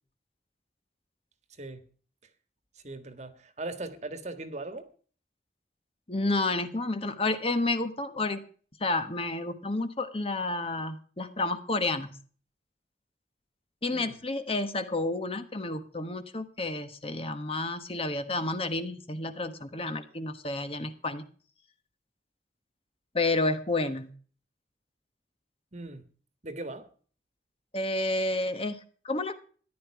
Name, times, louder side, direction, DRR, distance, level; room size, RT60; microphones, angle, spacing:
voice 1, 2.8-4.9 13.9-14.2 25.7-26.0 26.4-26.9, right 2 dB, 40° right, 10 dB, 1.6 m, -39 dB
voice 2, 6.1-8.4 8.8-12.2 13.8-21.2 23.1-24.1 27.7-29.3, left 2 dB, 30° left, 9 dB, 1.3 m, -30 dB
14.5 x 11.0 x 4.7 m, 0.42 s
head